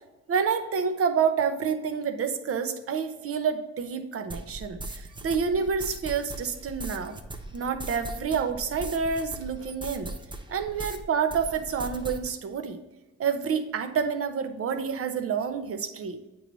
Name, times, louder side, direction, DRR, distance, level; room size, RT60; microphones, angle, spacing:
voice 1, 0.3-7.2 7.5-10.1 10.5-12.8 13.2-16.2, right 6 dB, 50° right, 7 dB, 0.8 m, -28 dB
sound 1, 4.3-11.0 11.3-12.3, right 2 dB, 15° right, 0.7 m, -39 dB
8.6 x 3.1 x 4.0 m, 1.1 s
cardioid pair, 90°, 30 cm